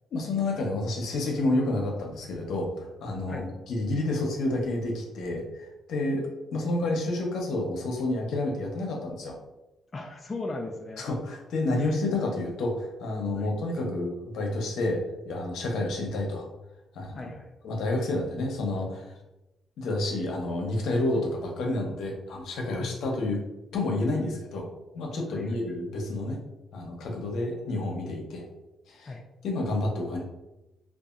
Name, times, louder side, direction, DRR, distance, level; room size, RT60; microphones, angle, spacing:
voice 1, 0.1-9.4 11.0-16.4 16.9-17.3 17.6-19.1 19.8-23.4 23.7-24.7 24.9-26.4 26.7-28.4 28.9-29.1 29.4-30.2, left 2 dB, 75° left, 1 dB, 0.6 m, -29 dB
voice 2, 9.9-11.0 11.7-11.9 13.4-13.5 17.1-17.5 22.8-23.2 25.3-25.6 29.1-29.2, left 2 dB, 30° left, 1 dB, 0.3 m, -38 dB
2.7 x 2.3 x 2.4 m, 0.99 s
cardioid pair, 90°, 0 cm